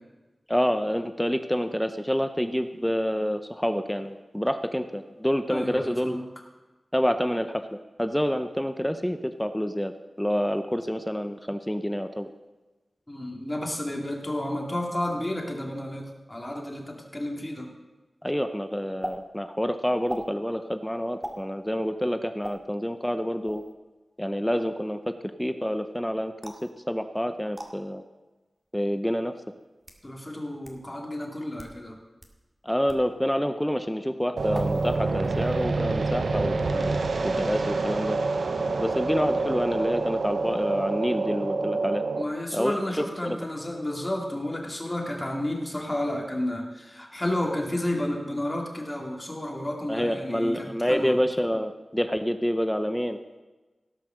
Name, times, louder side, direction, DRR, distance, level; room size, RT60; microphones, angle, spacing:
voice 1, 0.5-6.2 6.9-9.9 10.2-12.3 18.2-23.6 24.2-25.1 25.4-26.5 26.9-28.0 28.7-29.3 32.6-38.2 38.8-42.0 42.5-42.8 43.2-43.4 49.9-53.2, equal, 5° left, 9 dB, 0.7 m, -27 dB
voice 2, 5.5-6.2 13.1-17.7 30.0-32.0 42.2-51.1, left 1 dB, 20° left, 0 dB, 2.7 m, -31 dB
sound 1, 19.0-19.2 20.1-20.3 21.2-21.4 22.4-22.6 23.5-23.7 26.4-26.7 27.5-27.7 28.7-28.8 29.6-30.0 30.6-30.7 31.5-31.8 32.2-32.3 32.9-33.1 34.5-35.0 35.2-35.6, equal, 15° right, 2.0 m, -38 dB
sound 2, 34.4-42.2, right 3 dB, 80° right, 0.8 m, -27 dB
17.0 x 5.7 x 6.5 m, 1.2 s
cardioid pair, 50°, 0 cm